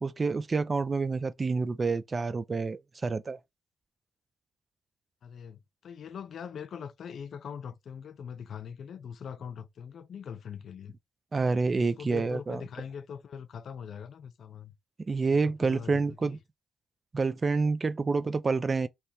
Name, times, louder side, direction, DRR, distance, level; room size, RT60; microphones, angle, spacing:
voice 1, 0.0-3.4 11.3-12.6 15.1-16.4 17.1-18.9, right 4 dB, 35° right, 0.5 m, -28 dB
voice 2, 5.2-10.9 11.8-14.7 15.3-16.4, left 7 dB, 70° left, 0.5 m, -42 dB
3.3 x 3.0 x 4.2 m
cardioid pair, 70°, 0 cm